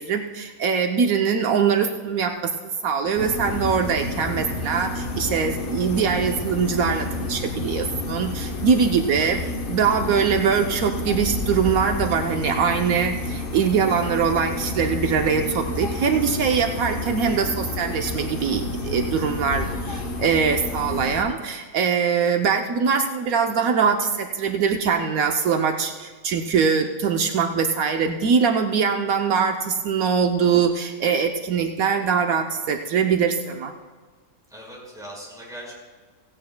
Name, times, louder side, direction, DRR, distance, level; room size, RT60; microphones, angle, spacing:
voice 1, 0.0-9.4 9.7-33.7, right 6 dB, 80° right, 4 dB, 1.2 m, -22 dB
sound 1, 3.2-21.2, left 2 dB, 40° left, 1.2 m, -30 dB
voice 2, 9.0-9.5 34.5-35.7, equal, ahead, -5 dB, 4.6 m, -40 dB
16.5 x 16.5 x 2.2 m, 1.5 s
omnidirectional pair, 1.5 m